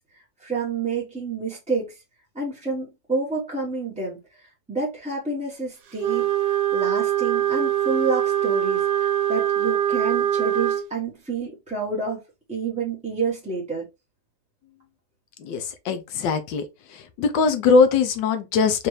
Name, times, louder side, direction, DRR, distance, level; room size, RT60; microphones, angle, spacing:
voice 1, 0.1-2.0 2.3-12.2 12.5-13.9, right 4 dB, 5° right, 0.8 m, -29 dB
Wind instrument woodwind instrument, 6.0-10.9, right 11 dB, 75° right, 1.3 m, -23 dB
voice 2, 15.4-16.6 16.9-18.9, left 5 dB, 80° left, 1.5 m, -21 dB
4.4 x 2.6 x 3.1 m
omnidirectional pair, 2.0 m